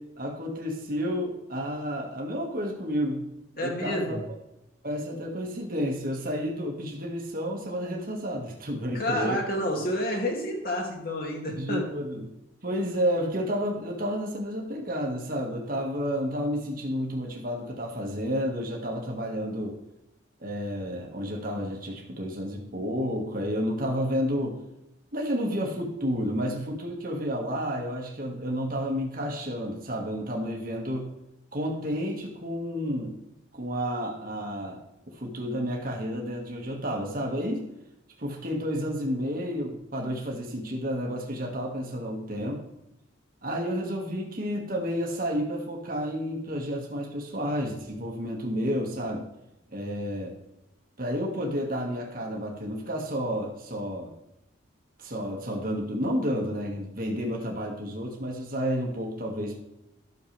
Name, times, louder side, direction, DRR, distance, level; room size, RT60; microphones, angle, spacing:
voice 1, 0.0-4.2 4.8-9.4 11.5-12.3 12.6-19.8 20.4-24.6 25.1-31.1 31.5-33.2 33.5-34.8 35.1-37.6 38.2-42.6 43.4-49.3 49.7-50.4 51.0-54.1 55.0-59.6, equal, 45° right, 0 dB, 1.8 m, -31 dB
voice 2, 3.6-4.2 8.9-11.9, equal, 45° left, 0 dB, 2.4 m, -29 dB
12.0 x 7.0 x 3.4 m, 0.88 s
head